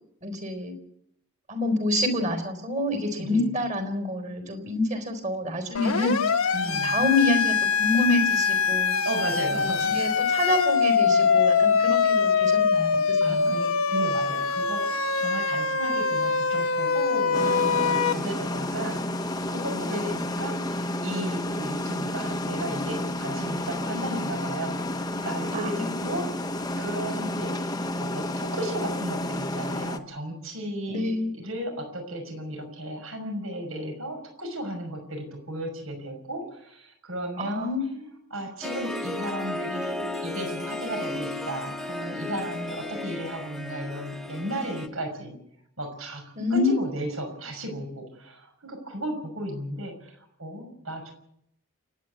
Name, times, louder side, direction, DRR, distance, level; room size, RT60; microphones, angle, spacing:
voice 1, 0.2-0.7 1.5-6.2 6.6-9.0 9.5-13.5 25.5-25.9 30.9-31.5 37.4-38.0 46.4-46.7, left 2 dB, 35° right, 8 dB, 4.1 m, -27 dB
voice 2, 3.2-3.5 6.5-7.0 9.0-10.1 13.2-26.5 26.8-37.7 38.3-45.4 45.8-46.2 46.5-51.1, right 1 dB, 75° right, 4 dB, 5.9 m, -35 dB
Siren, 5.7-18.1, left 5 dB, 75° left, 1.3 m, -23 dB
sound 1, 17.3-30.0, left 1 dB, 20° left, 1.0 m, -31 dB
Harp, 38.6-44.9, left 2 dB, ahead, 1.8 m, -34 dB
29.0 x 9.9 x 9.4 m, 0.74 s
head